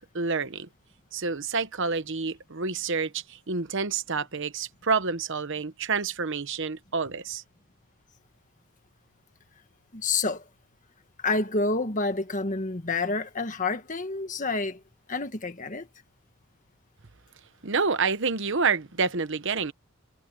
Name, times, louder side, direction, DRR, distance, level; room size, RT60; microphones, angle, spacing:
voice 1, 0.1-0.7 1.1-7.4 17.6-19.7, right 4 dB, 55° right, 1.1 m, -28 dB
voice 2, 9.9-10.5 11.2-14.8 15.1-15.9, left 3 dB, 35° left, 1.5 m, -28 dB
head